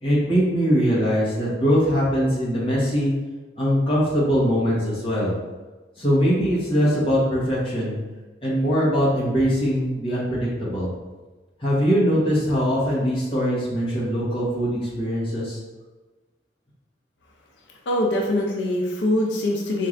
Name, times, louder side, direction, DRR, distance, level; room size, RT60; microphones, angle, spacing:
voice 1, 0.0-3.1 3.6-5.3 6.0-7.9 8.4-10.9 11.6-15.6, equal, 30° left, -7 dB, 1.1 m, -22 dB
voice 2, 17.9-19.9, left 1 dB, 85° left, 0 dB, 0.5 m, -23 dB
4.4 x 3.2 x 2.5 m, 1.2 s
head